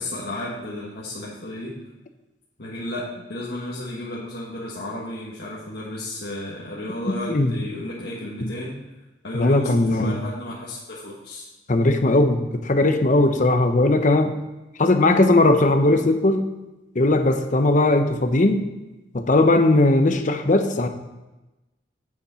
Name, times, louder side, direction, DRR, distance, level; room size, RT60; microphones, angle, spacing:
voice 1, 0.0-1.8 2.6-8.8 9.2-11.4, left 1 dB, 65° left, -6 dB, 1.5 m, -33 dB
voice 2, 7.0-7.6 8.4-8.5 9.3-10.2 11.7-14.3 14.8-16.5 16.9-18.6 19.1-20.9, left 2 dB, 45° left, 7 dB, 0.8 m, -18 dB
8.5 x 7.1 x 4.3 m, 1.0 s
head